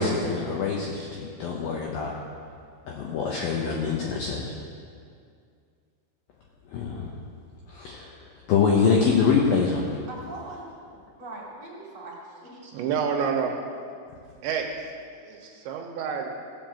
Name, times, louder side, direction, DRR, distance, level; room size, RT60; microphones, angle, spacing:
voice 1, 0.0-2.1 2.9-4.5 6.7-7.1 7.7-8.1 8.5-9.9, left 5 dB, 85° left, -1 dB, 2.1 m, -24 dB
voice 2, 10.1-10.6 11.2-12.9 15.3-15.5, right 2 dB, 35° right, -5 dB, 2.6 m, -41 dB
voice 3, 12.7-13.5 14.4-14.7 15.3-16.3, right 7 dB, 80° right, 2 dB, 3.0 m, -28 dB
17.0 x 5.8 x 7.7 m, 2.3 s
omnidirectional pair, 5.6 m